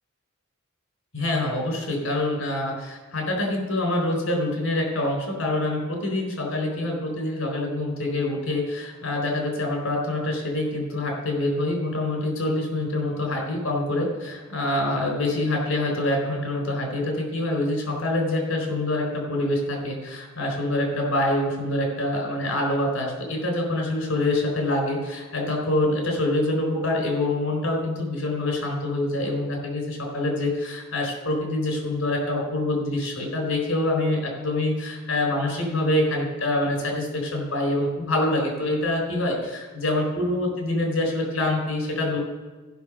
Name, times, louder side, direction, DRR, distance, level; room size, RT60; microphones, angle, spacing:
voice 1, 1.1-42.2, left 1 dB, 80° left, 1 dB, 4.2 m, -25 dB
14.0 x 6.1 x 6.2 m, 1.3 s
head